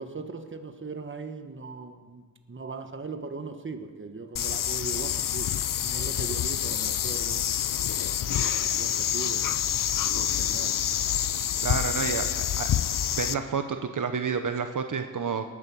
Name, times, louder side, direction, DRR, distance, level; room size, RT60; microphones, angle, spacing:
voice 1, 0.0-5.5 5.8-7.4 8.0-9.5 10.0-10.8, right 4 dB, 40° right, 7 dB, 1.3 m, -39 dB
sound 1, 4.4-13.3, left 10 dB, 80° left, 0.5 m, -27 dB
voice 2, 11.6-12.7 13.1-15.4, right 6 dB, 70° right, 7 dB, 1.0 m, -30 dB
18.5 x 10.0 x 7.1 m, 1.4 s
wide cardioid pair, 100°, 32 cm